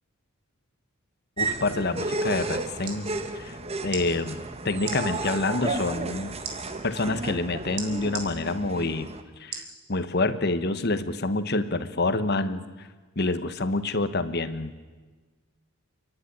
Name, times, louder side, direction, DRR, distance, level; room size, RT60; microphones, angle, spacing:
voice 1, 1.4-3.6 3.8-6.3 6.8-9.1 9.4-12.9 13.2-14.7, left 2 dB, 45° left, 12 dB, 1.1 m, -27 dB
sound 1, 1.4-9.2, right 3 dB, 25° right, 1.2 m, -33 dB
sound 2, 2.8-3.0 3.9-4.1 4.8-5.0 6.4-6.6 7.8-8.3 9.5-9.7 10.3-10.4, right 7 dB, 75° right, 3.4 m, -35 dB
29.0 x 11.5 x 10.0 m, 1.4 s
head